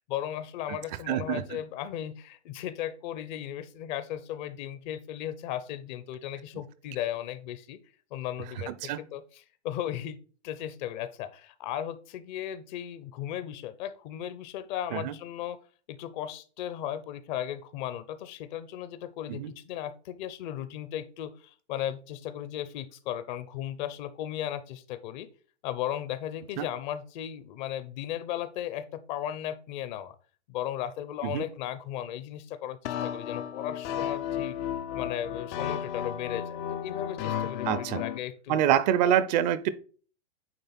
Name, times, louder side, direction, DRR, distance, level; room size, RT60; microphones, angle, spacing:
voice 1, 0.0-7.8 8.1-10.2 10.4-25.3 25.6-30.2 30.5-34.6 34.9-38.7 39.0-39.2, left 11 dB, 40° left, 0.8 m, -36 dB
voice 2, 1.1-1.4 8.7-9.0 14.9-15.1 19.3-19.5 26.6-26.7 31.2-31.4 37.7-38.0 38.5-39.7, right 11 dB, 40° right, 0.6 m, -26 dB
sound 1, 32.8-38.2, left 9 dB, 25° left, 0.4 m, -33 dB
9.2 x 3.3 x 4.3 m
hypercardioid pair, 130°, 35 cm